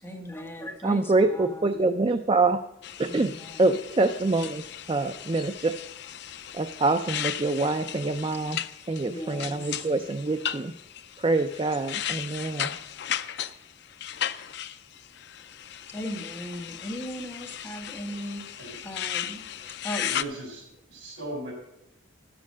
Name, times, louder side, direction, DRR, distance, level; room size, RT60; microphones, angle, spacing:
voice 1, 0.0-1.7 3.0-3.7 9.1-9.9 15.9-20.1, equal, 15° left, 0 dB, 1.4 m, -38 dB
voice 2, 0.8-2.6 3.0-3.3 3.6-4.6 4.9-5.8 6.5-8.6 8.9-10.7 11.2-12.8, right 3 dB, 25° right, 9 dB, 0.4 m, -25 dB
sound 1, 2.8-20.2, left 10 dB, 60° left, 0.4 m, -36 dB
voice 3, 20.0-21.5, right 1 dB, 85° right, 0 dB, 4.9 m, -38 dB
12.5 x 7.6 x 6.2 m, 0.84 s
head